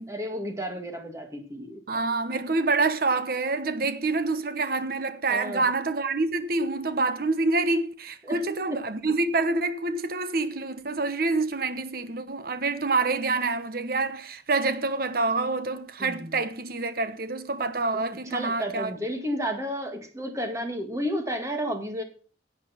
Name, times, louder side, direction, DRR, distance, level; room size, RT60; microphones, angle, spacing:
voice 1, 0.1-1.8 5.3-5.7 8.2-8.4 8.7-8.8 16.0-16.4 17.9-22.0, equal, 15° right, 2.0 m, -32 dB
voice 2, 1.9-19.0, right 3 dB, 55° right, 1.1 m, -27 dB
11.0 x 8.0 x 5.7 m
head